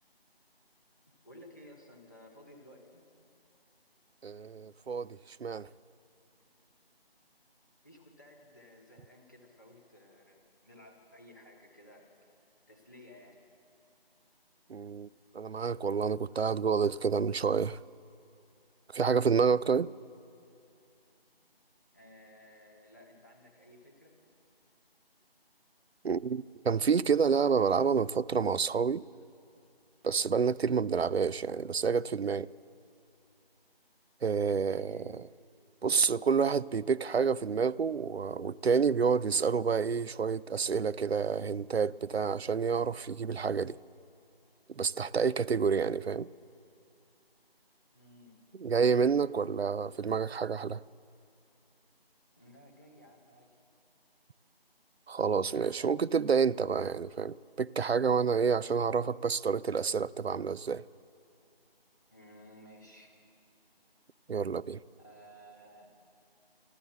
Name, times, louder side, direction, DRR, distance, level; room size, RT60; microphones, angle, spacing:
voice 1, 1.2-3.0 7.8-12.1 12.7-13.4 21.9-24.1 34.7-35.2 47.9-48.4 52.4-53.5 62.1-63.3 65.0-65.9, equal, 20° left, 1.2 m, -55 dB
voice 2, 4.2-5.7 14.7-15.1 15.3-17.8 18.9-19.9 26.0-29.0 30.0-32.5 34.2-35.1 35.8-43.8 44.8-46.3 48.6-50.8 55.1-60.8 64.3-64.8, right 6 dB, 80° right, 0.5 m, -28 dB
13.0 x 13.0 x 7.7 m
figure-of-eight pair, 170°, 31 cm